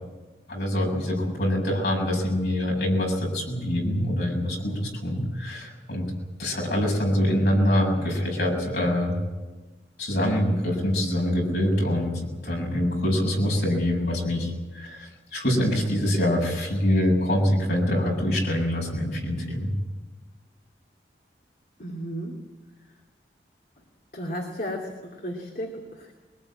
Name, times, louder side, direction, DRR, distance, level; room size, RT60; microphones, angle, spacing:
voice 1, 0.5-6.1 6.4-9.2 10.0-19.7, left 1 dB, 70° left, -1 dB, 7.4 m, -25 dB
voice 2, 21.8-22.4 24.1-26.1, equal, 55° left, 0 dB, 2.7 m, -34 dB
22.5 x 19.5 x 8.9 m, 1.2 s
head